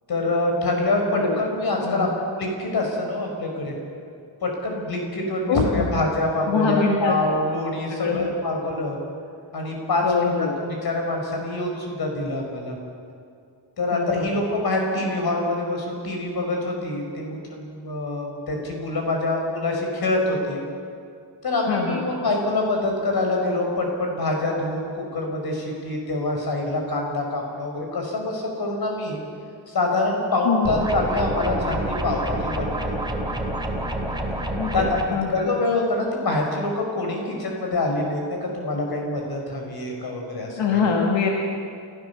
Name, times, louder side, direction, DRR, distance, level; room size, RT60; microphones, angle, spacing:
voice 1, 0.1-3.7 4.4-9.0 9.5-10.3 10.7-12.8 13.8-20.6 21.4-29.2 29.7-32.9 34.7-35.0 35.3-40.8, left 2 dB, 55° left, 1 dB, 5.2 m, -25 dB
voice 2, 1.8-2.2 5.5-5.9 6.5-7.2 7.9-8.3 10.0-10.6 13.9-14.3 21.7-22.0 30.4-30.8 34.5-34.9 35.1-35.3 40.5-41.3, left 5 dB, 90° left, 1 dB, 2.0 m, -24 dB
sound 1, 30.6-35.0, right 1 dB, 10° right, 2.4 m, -27 dB
29.0 x 15.0 x 7.0 m, 2.3 s
wide cardioid pair, 155°, 44 cm